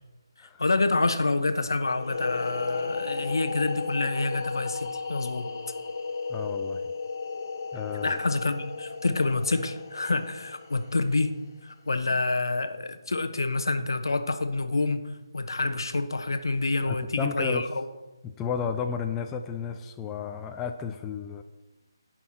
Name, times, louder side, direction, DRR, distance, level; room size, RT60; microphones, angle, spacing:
voice 1, 0.6-5.5 8.0-11.3 11.6-17.8, left 3 dB, 60° left, 10 dB, 0.9 m, -27 dB
sound 1, 1.9-11.5, left 4 dB, 40° left, 1.4 m, -34 dB
voice 2, 6.3-6.8 7.7-8.2 16.8-17.7 18.2-21.4, left 6 dB, 10° left, 5 dB, 0.4 m, -33 dB
17.5 x 6.0 x 4.3 m, 1.1 s
figure-of-eight pair, 150°, 2 cm